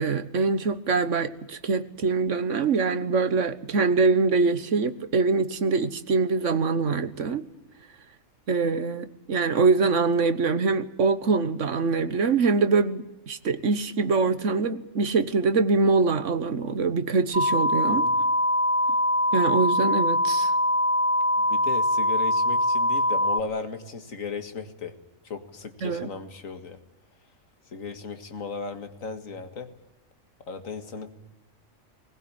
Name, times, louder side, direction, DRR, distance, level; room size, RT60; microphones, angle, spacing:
voice 1, 0.0-7.4 8.5-18.1 19.3-20.5 25.8-26.1, right 4 dB, 65° right, 12 dB, 1.6 m, -24 dB
sound 1, 17.3-23.4, left 1 dB, 25° right, 1.0 m, -23 dB
voice 2, 17.8-18.2 21.4-24.9 25.2-26.8 27.7-29.7 30.5-31.1, left 4 dB, 80° left, 8 dB, 2.2 m, -36 dB
20.5 x 20.0 x 8.7 m, 0.90 s
omnidirectional pair, 1.4 m